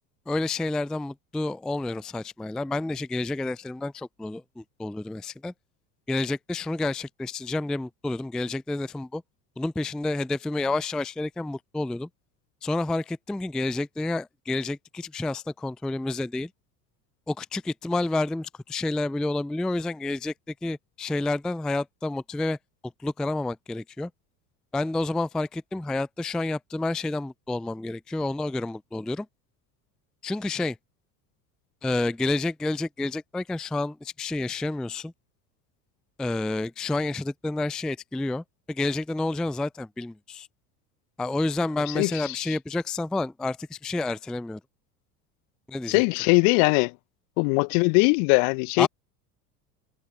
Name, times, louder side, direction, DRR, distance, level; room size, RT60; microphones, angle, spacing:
voice 1, 0.3-5.5 6.1-9.2 9.6-12.1 12.6-16.5 17.3-20.3 20.6-22.6 23.0-24.1 24.7-29.3 30.2-30.8 31.8-35.1 36.2-40.5 41.2-44.6 45.7-46.0 48.8-48.9, left 2 dB, ahead, 0.3 m, -29 dB
voice 2, 41.9-42.6 45.9-46.9 47.4-48.9, left 38 dB, 55° left, 0.9 m, -21 dB
figure-of-eight pair, 70°, 46 cm